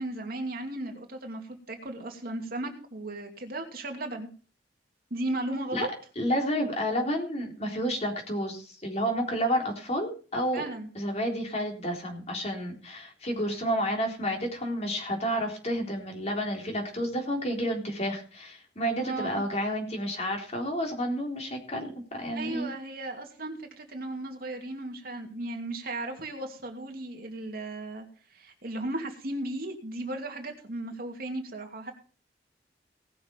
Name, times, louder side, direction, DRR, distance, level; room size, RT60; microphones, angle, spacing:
voice 1, 0.0-1.4 1.7-4.3 5.1-5.9 10.5-10.9 19.0-19.4 22.3-28.1 28.3-31.9, right 2 dB, 55° right, 3 dB, 2.6 m, -35 dB
voice 2, 6.2-10.6 11.0-22.7, equal, 35° left, 1 dB, 3.8 m, -30 dB
18.5 x 6.9 x 5.3 m, 0.39 s
head